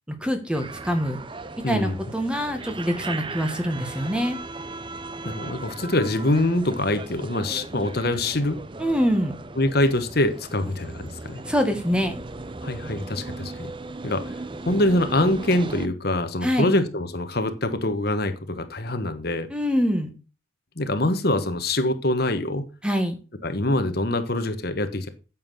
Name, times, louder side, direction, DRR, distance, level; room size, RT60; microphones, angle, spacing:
voice 1, 0.1-1.2 1.7-4.4 8.8-9.4 11.4-12.1 16.4-16.7 19.5-20.1 22.8-23.2, equal, 5° right, 6 dB, 1.4 m, -24 dB
sound 1, 0.5-15.9, right 3 dB, 25° right, 0.6 m, -37 dB
voice 2, 1.6-2.0 5.2-8.6 9.6-11.4 12.6-13.7 14.0-14.4 14.7-19.5 20.8-22.7 23.4-25.1, left 1 dB, 50° left, 9 dB, 1.2 m, -24 dB
9.1 x 7.4 x 6.3 m, 0.35 s
head